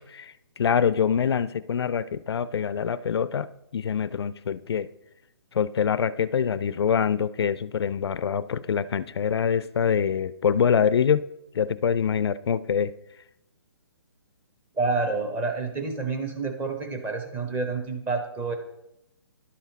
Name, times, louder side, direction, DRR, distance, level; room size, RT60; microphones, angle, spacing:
voice 1, 0.0-3.5 3.7-4.9 5.5-11.2 11.5-12.9, left 7 dB, 70° left, 17 dB, 0.4 m, -25 dB
voice 2, 14.7-18.6, right 3 dB, 15° right, 4 dB, 0.8 m, -28 dB
11.5 x 4.2 x 4.0 m, 0.85 s
hypercardioid pair, 150°, 14 cm